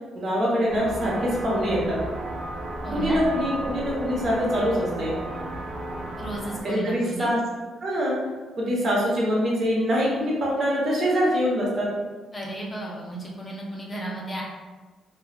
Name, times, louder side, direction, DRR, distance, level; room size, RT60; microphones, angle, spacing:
voice 1, 0.1-2.0 2.9-5.2 6.6-7.4 7.8-8.2 8.6-11.9, equal, 55° right, -4 dB, 0.9 m, -24 dB
sound 1, 0.7-6.6, right 1 dB, 80° right, 0.6 m, -33 dB
voice 2, 2.8-3.2 6.2-7.3 12.3-14.4, right 1 dB, 25° left, -4 dB, 0.7 m, -34 dB
3.3 x 2.3 x 2.3 m, 1.3 s
cardioid pair, 90°, 0 cm